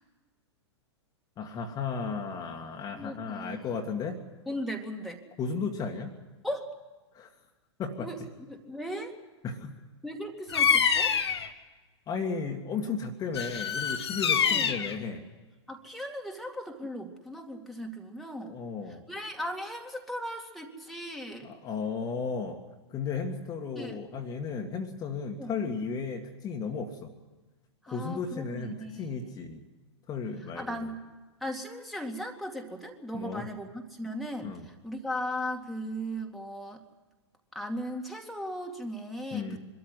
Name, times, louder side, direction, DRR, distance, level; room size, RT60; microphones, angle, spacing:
voice 1, 1.4-4.2 5.4-6.1 7.1-7.3 7.8-8.1 9.4-9.8 12.1-15.2 18.4-19.0 21.4-22.6 22.9-27.1 27.9-29.6 30.1-30.8 33.1-33.4 34.4-34.7 39.3-39.6, left 5 dB, 25° left, 3 dB, 1.9 m, -34 dB
voice 2, 2.9-3.7 4.5-5.2 6.4-6.7 8.0-8.2 8.5-9.1 10.0-11.2 14.4-14.7 15.7-18.6 19.1-21.5 23.8-24.0 25.4-25.5 27.8-29.5 30.4-31.0 31.4-36.8 37.5-39.6, equal, ahead, 1 dB, 2.3 m, -37 dB
Bird vocalization bird call bird song, 10.5-11.5 13.3-15.0, left 7 dB, 65° left, 1.5 m, -26 dB
24.0 x 13.5 x 9.5 m, 1.2 s
figure-of-eight pair, 100°, 15 cm